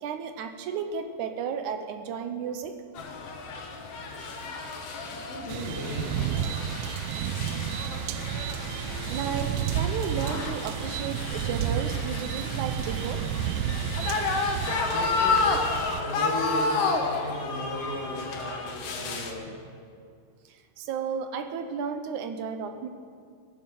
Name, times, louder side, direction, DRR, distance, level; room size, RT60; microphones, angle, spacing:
voice 1, 0.0-2.7 9.1-13.2 20.5-22.9, right 6 dB, 70° right, 7 dB, 2.2 m, -33 dB
sound 1, 2.9-19.3, left 4 dB, 60° left, 1.8 m, -31 dB
voice 2, 5.3-6.2 14.8-19.6, left 1 dB, 80° left, -3 dB, 3.7 m, -35 dB
sound 2, 5.5-16.0, right 10 dB, 90° right, 1.7 m, -31 dB
20.5 x 11.0 x 5.5 m, 2.2 s
omnidirectional pair, 4.1 m